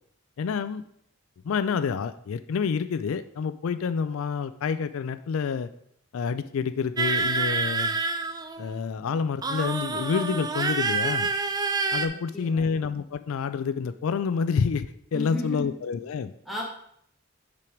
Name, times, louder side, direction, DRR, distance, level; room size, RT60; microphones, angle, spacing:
voice 1, 0.4-0.8 1.4-5.7 6.1-8.0 8.6-11.3 11.9-16.3, left 6 dB, 75° left, 12 dB, 0.4 m, -28 dB
sound 1, 7.0-8.8 9.4-12.1, right 3 dB, 20° right, 0.3 m, -27 dB
voice 2, 12.1-12.7 15.1-15.7 16.4-16.6, left 1 dB, ahead, -3 dB, 1.5 m, -35 dB
5.9 x 4.6 x 5.0 m, 0.70 s
head